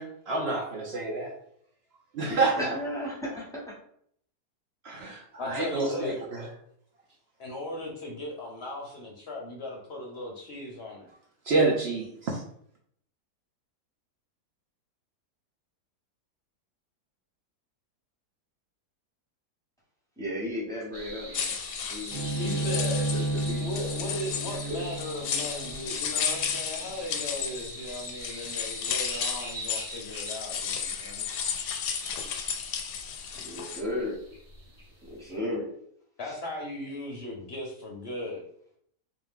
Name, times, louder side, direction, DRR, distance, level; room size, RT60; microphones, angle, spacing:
voice 1, 0.0-1.3 2.1-2.5 4.8-6.5 11.5-12.4, right 3 dB, 65° right, 0 dB, 0.6 m, -28 dB
voice 2, 2.3-3.8 20.2-21.6 21.8-22.8 23.1-23.6 24.5-24.9 33.3-34.2 35.1-35.7 36.3-36.4, left 1 dB, 5° left, -5 dB, 0.8 m, -35 dB
voice 3, 5.4-6.2 7.4-11.1 22.4-23.1 23.6-31.3 36.2-38.4, left 1 dB, 55° left, -1 dB, 0.7 m, -37 dB
sound 1, 20.9-35.4, right 1 dB, 30° right, 0.9 m, -44 dB
sound 2, 21.3-33.8, left 7 dB, 85° left, 1.2 m, -34 dB
Bowed string instrument, 22.1-27.4, right 2 dB, 85° right, 1.4 m, -33 dB
3.7 x 2.6 x 3.6 m, 0.66 s
omnidirectional pair, 1.7 m